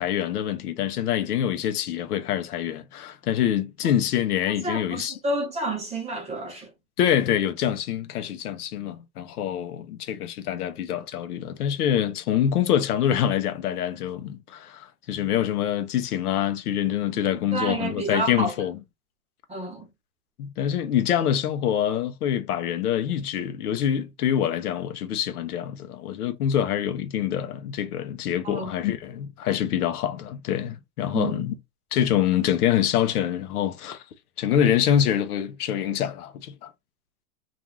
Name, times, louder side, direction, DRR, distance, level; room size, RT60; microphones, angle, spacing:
voice 1, 0.0-5.2 7.0-18.8 20.4-31.5 31.9-34.0 34.4-36.7, left 10 dB, 80° left, 0.7 m, -25 dB
voice 2, 4.6-6.7 17.1-17.2 17.5-18.5 19.5-19.9 28.4-28.7 31.1-31.6, right 2 dB, 15° right, 0.8 m, -30 dB
2.4 x 2.3 x 3.1 m
hypercardioid pair, 115°, 45 cm